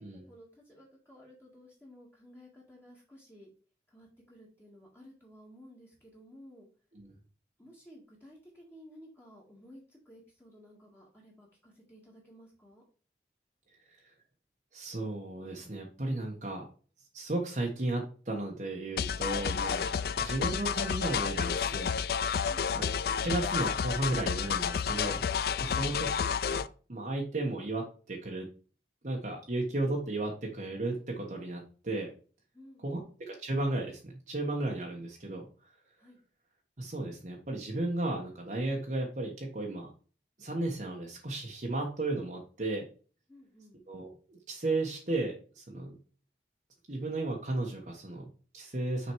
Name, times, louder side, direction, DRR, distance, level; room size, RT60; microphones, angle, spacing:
voice 1, 0.1-3.5 3.9-6.7 7.6-12.8 20.0-20.3 25.6-26.1 32.5-33.1 36.0-36.2 43.3-43.8, equal, 15° left, -4 dB, 1.8 m, -55 dB
voice 2, 14.7-16.6 17.1-19.9 20.2-21.9 22.7-25.2 25.6-26.6 26.9-28.5 29.0-32.1 32.8-35.5 36.8-39.9 40.4-42.8 43.9-46.0 46.9-49.1, right 2 dB, 45° right, -1 dB, 1.2 m, -34 dB
sound 1, 19.0-26.7, left 7 dB, 55° left, 0.3 m, -31 dB
6.3 x 4.0 x 4.6 m, 0.38 s
head